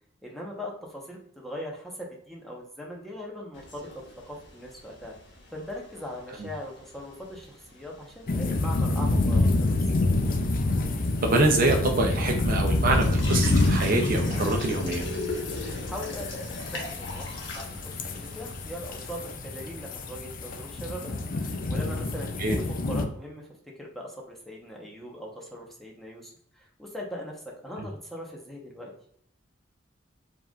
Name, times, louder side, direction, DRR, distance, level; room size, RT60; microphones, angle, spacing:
voice 1, 0.2-3.9 4.3-5.2 5.5-9.7 15.8-16.4 16.7-23.5 23.8-28.9, equal, ahead, -2 dB, 1.1 m, -40 dB
sound 1, 3.5-19.3, left 2 dB, 65° left, 1.2 m, -42 dB
sound 2, 8.3-23.0, left 2 dB, 45° left, 0.5 m, -27 dB
voice 2, 11.3-15.0 22.4-22.6, right 2 dB, 50° right, 2 dB, 0.6 m, -25 dB
4.6 x 3.7 x 2.4 m, 0.68 s
head